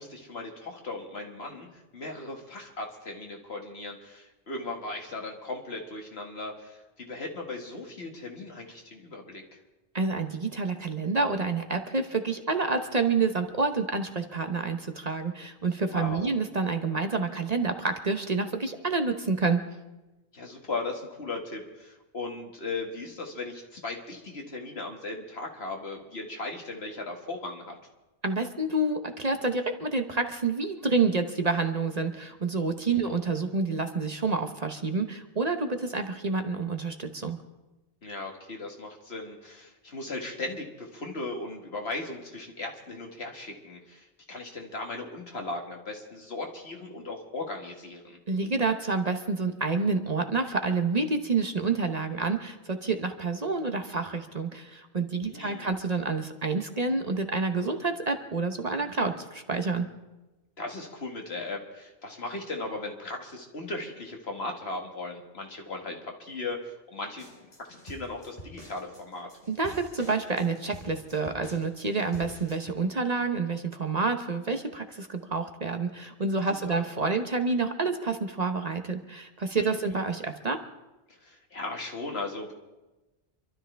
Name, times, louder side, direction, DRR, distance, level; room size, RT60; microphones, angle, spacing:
voice 1, 0.0-9.6 15.9-16.3 20.3-27.8 32.9-33.1 38.0-48.2 55.2-55.8 60.6-69.3 76.6-76.8 79.5-79.9 81.1-82.5, left 2 dB, 70° left, 1 dB, 2.1 m, -37 dB
voice 2, 9.9-19.6 28.2-37.4 48.3-59.9 69.5-80.6, right 4 dB, 40° right, 6 dB, 1.0 m, -28 dB
sound 1, 67.2-72.7, left 1 dB, 40° left, 3.8 m, -48 dB
27.0 x 13.0 x 3.4 m, 1.1 s
omnidirectional pair, 1.1 m